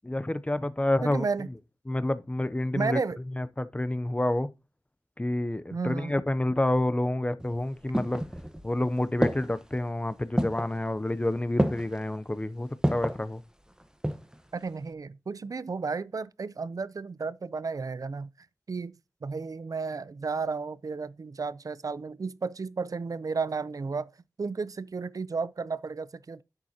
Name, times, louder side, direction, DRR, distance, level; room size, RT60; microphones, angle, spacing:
voice 1, 0.0-1.3 1.9-3.0 3.4-4.5 5.2-8.2 8.6-13.4, left 1 dB, 20° left, 0.6 m, -28 dB
voice 2, 1.0-1.5 2.7-3.2 5.7-6.2 14.5-18.3 18.7-24.1 24.4-26.4, right 4 dB, 65° right, 0.5 m, -33 dB
sound 1, 7.4-8.7 9.2-9.7 10.4-10.8 11.6-12.0 12.8-13.2 13.8-14.4 14.7-14.8, equal, 10° right, 1.0 m, -28 dB
10.5 x 7.5 x 2.8 m
wide cardioid pair, 65°, 7 cm